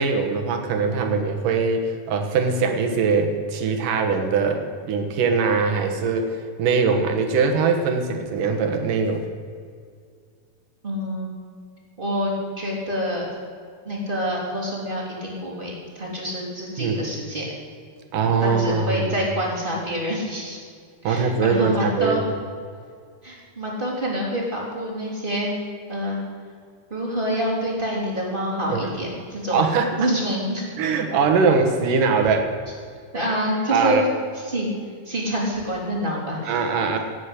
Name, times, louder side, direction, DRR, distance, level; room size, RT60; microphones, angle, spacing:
voice 1, 0.0-9.3 16.8-17.0 18.1-19.1 21.0-22.2 28.7-28.9 29.5-30.0 30.8-32.5 33.7-34.0 36.4-37.0, right 5 dB, 70° right, 4 dB, 2.8 m, -22 dB
voice 2, 10.8-11.3 12.0-13.3 13.8-17.4 18.4-20.6 21.0-22.2 23.2-25.5 25.9-26.2 26.9-29.6 30.0-30.7 33.1-34.0 34.4-34.7 35.0-36.6, equal, 15° right, -4 dB, 3.3 m, -26 dB
17.0 x 8.2 x 8.3 m, 2.1 s
omnidirectional pair, 4.1 m